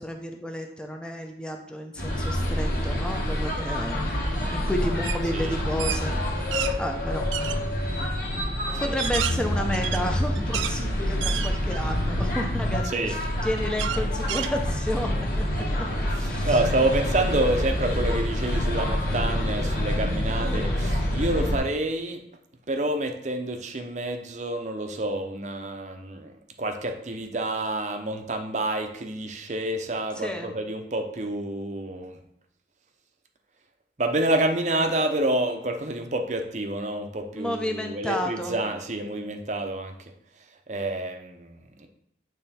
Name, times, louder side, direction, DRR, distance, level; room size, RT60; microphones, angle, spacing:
voice 1, 0.0-4.0 4.5-6.2 6.8-7.2 8.8-15.9 16.2-16.8 20.4-20.8 30.2-30.5 37.3-38.6, equal, 5° left, 2 dB, 0.6 m, -31 dB
sound 1, 2.0-21.6, left 1 dB, 55° left, 1.6 m, -27 dB
sound 2, 5.0-5.2 5.6-6.7 7.3-7.6 8.2-8.3 8.8-10.8 11.2-11.9 12.4-12.5 13.8-15.0, right 10 dB, 90° right, 0.4 m, -30 dB
voice 2, 16.5-22.2 22.7-26.3 26.6-32.2 34.0-39.9 40.7-41.9, right 1 dB, 40° right, 5 dB, 0.7 m, -28 dB
8.8 x 3.2 x 4.2 m, 0.73 s
head